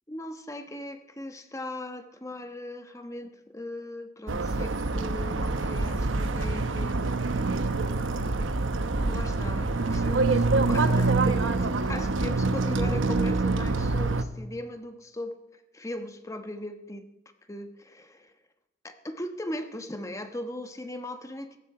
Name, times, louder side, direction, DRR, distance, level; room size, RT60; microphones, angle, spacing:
voice 1, 0.1-7.1 7.6-8.1 8.9-17.1 17.5-18.3 18.8-21.6, left 1 dB, 15° left, 7 dB, 1.1 m, -38 dB
sound 1, 4.3-14.2, right 3 dB, 85° right, 0.9 m, -26 dB
16.0 x 15.0 x 4.9 m, 0.98 s
head